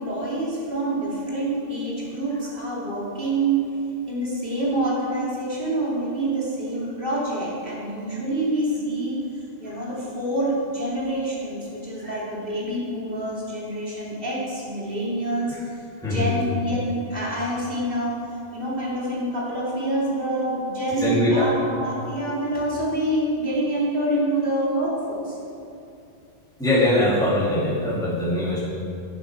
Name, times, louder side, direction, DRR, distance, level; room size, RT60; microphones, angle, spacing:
voice 1, 0.0-3.6 4.1-9.2 9.6-15.7 16.0-18.2 18.5-25.4, right 1 dB, 55° right, -6 dB, 3.1 m, -26 dB
voice 2, 16.0-16.4 21.0-21.5 26.6-28.6, left 1 dB, 5° left, -10 dB, 2.4 m, -22 dB
11.5 x 10.0 x 4.8 m, 2.7 s
omnidirectional pair, 1.2 m